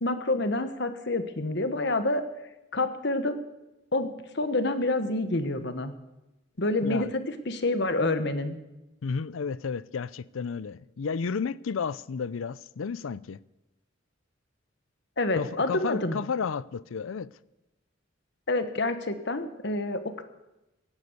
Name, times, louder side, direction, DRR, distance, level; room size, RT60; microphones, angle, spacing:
voice 1, 0.0-2.2 2.7-3.4 3.9-5.9 6.6-8.6 15.2-16.2 18.5-20.2, left 2 dB, 55° left, 1.3 m, -28 dB
voice 2, 6.8-7.1 9.0-13.4 15.3-17.3, left 5 dB, 80° left, 0.5 m, -32 dB
16.5 x 9.5 x 8.0 m
head